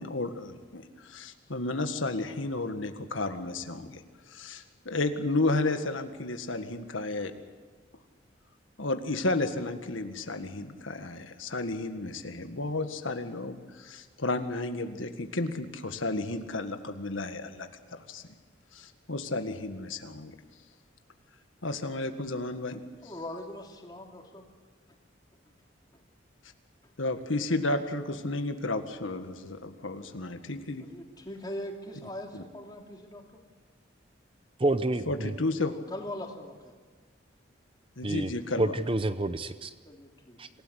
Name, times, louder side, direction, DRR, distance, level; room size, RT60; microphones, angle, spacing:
voice 1, 0.0-4.0 4.3-7.3 8.8-18.2 18.7-20.3 21.6-22.8 27.0-30.9 32.3-32.4 35.1-35.7 38.0-38.7, left 2 dB, 85° left, 7 dB, 1.8 m, -32 dB
voice 2, 23.0-24.4 30.8-33.4 35.7-36.7 39.8-40.4, left 1 dB, 20° left, 2 dB, 3.0 m, -41 dB
voice 3, 34.6-35.3 38.0-38.3 38.6-39.7 40.4-40.5, right 2 dB, 25° right, 12 dB, 0.7 m, -28 dB
27.0 x 17.0 x 8.2 m, 1.4 s
head